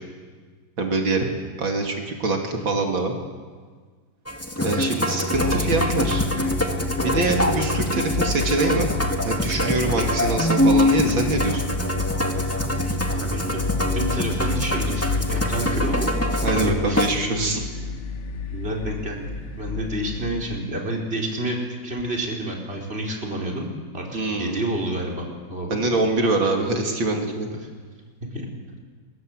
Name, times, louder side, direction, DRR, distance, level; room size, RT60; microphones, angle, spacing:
voice 1, 0.8-1.3 1.6-3.1 4.6-6.3 7.0-8.9 9.2-11.6 16.4-17.6 24.1-24.6 25.7-27.5, right 2 dB, 80° right, 2 dB, 3.3 m, -24 dB
Musical instrument, 4.3-17.2, left 1 dB, 10° left, 1.8 m, -24 dB
sound 1, 5.3-20.6, left 4 dB, 40° left, 1.4 m, -30 dB
voice 2, 13.1-17.0 17.4-17.5 18.5-19.3 19.6-23.7 23.9-24.1 24.4-25.8 28.3-28.5, right 1 dB, 30° right, -1 dB, 4.7 m, -29 dB
28.0 x 23.0 x 7.9 m, 1.5 s
omnidirectional pair, 2.1 m